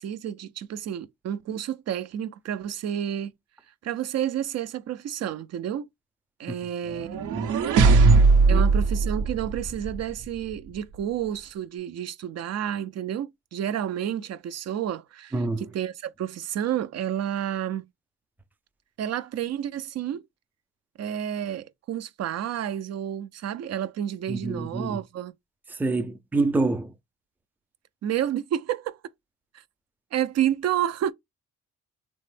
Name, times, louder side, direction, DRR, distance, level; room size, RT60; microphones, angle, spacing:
voice 1, 0.0-3.3 3.8-5.9 6.4-7.2 8.5-17.9 19.0-20.2 21.0-25.3 28.0-29.0 29.5-29.6 30.1-31.1, right 10 dB, 60° right, 0.5 m, -30 dB
sound 1, 6.9-10.1, right 4 dB, 90° right, 0.8 m, -19 dB
voice 2, 15.3-15.7 24.3-25.0 25.7-26.9, right 3 dB, 5° right, 0.5 m, -27 dB
3.0 x 2.1 x 3.2 m
cardioid pair, 90°, 30 cm